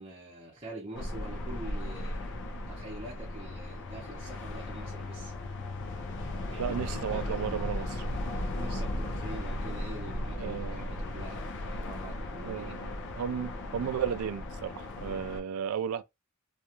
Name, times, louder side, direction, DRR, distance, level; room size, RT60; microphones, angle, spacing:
voice 1, 0.0-5.3 6.5-6.7 7.1-7.9 8.5-12.7, right 1 dB, 25° right, 0.7 m, -45 dB
sound 1, 0.9-15.4, left 1 dB, 55° left, 0.5 m, -36 dB
voice 2, 6.6-8.0 10.4-11.0 12.4-16.0, right 8 dB, 75° right, 0.3 m, -34 dB
2.4 x 2.3 x 2.9 m
head